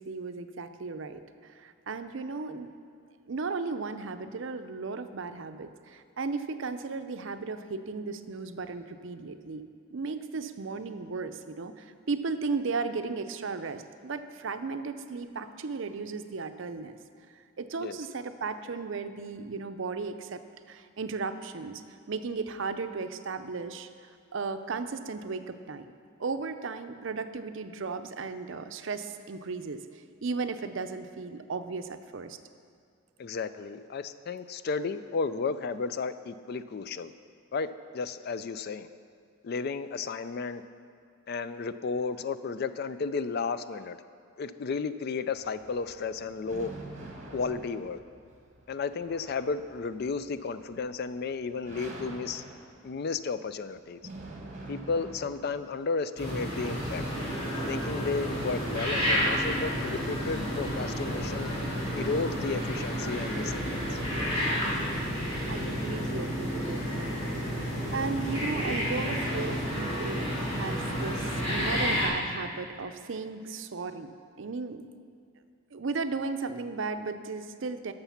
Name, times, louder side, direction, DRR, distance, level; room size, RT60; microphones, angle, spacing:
voice 1, 0.0-2.7 3.3-9.7 9.9-17.0 17.3-20.4 20.7-21.8 22.1-23.9 24.3-25.9 26.2-32.4 65.5-66.9 67.9-74.8 75.7-77.9, right 4 dB, 60° right, 9 dB, 0.5 m, -35 dB
voice 2, 33.2-37.1 37.5-38.9 39.4-40.6 41.3-44.0 44.4-46.7 47.3-48.0 48.7-52.4 52.8-54.0 54.7-57.1 57.7-61.5 61.9-64.0, left 4 dB, 50° left, 13 dB, 0.3 m, -33 dB
sound 1, 45.3-55.8, right 2 dB, 35° right, 1.3 m, -47 dB
sound 2, 56.2-72.1, equal, 30° left, 2.7 m, -30 dB
13.0 x 6.7 x 5.7 m, 2.2 s
head